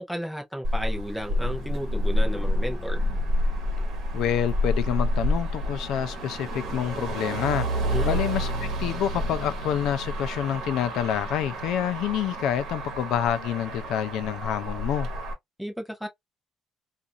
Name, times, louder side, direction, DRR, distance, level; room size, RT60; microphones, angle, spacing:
voice 1, 0.0-3.0 7.9-8.2 15.6-16.1, equal, ahead, 0.6 m, -33 dB
Motor vehicle (road), 0.6-15.3, equal, 65° right, 1.0 m, -29 dB
sound 1, 1.3-6.7, left 2 dB, 15° left, 1.0 m, -46 dB
voice 2, 4.1-7.7 8.1-15.1, left 10 dB, 70° left, 0.4 m, -27 dB
2.5 x 2.4 x 2.7 m
cardioid pair, 175°, 0 cm